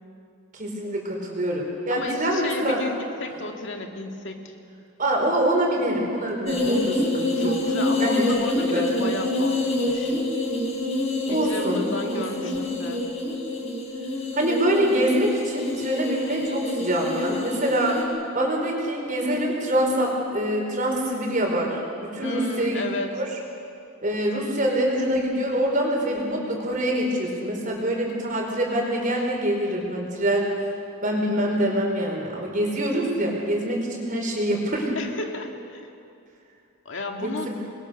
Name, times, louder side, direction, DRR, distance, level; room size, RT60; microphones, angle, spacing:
voice 1, 0.5-2.8 5.0-7.5 7.9-8.3 8.6-8.9 11.3-11.9 12.1-12.6 14.3-18.0 18.3-22.8 23.2-23.3 24.0-30.7 31.0-34.9 37.2-37.5, right 1 dB, 40° right, 0 dB, 4.8 m, -25 dB
voice 2, 1.9-4.5 7.4-10.2 11.3-13.0 22.2-23.1 35.0-35.9 36.9-37.5, left 2 dB, 60° left, 3 dB, 2.1 m, -33 dB
sound 1, 6.5-18.0, left 1 dB, 30° left, 5.3 m, -27 dB
28.0 x 22.0 x 6.6 m, 2.6 s
head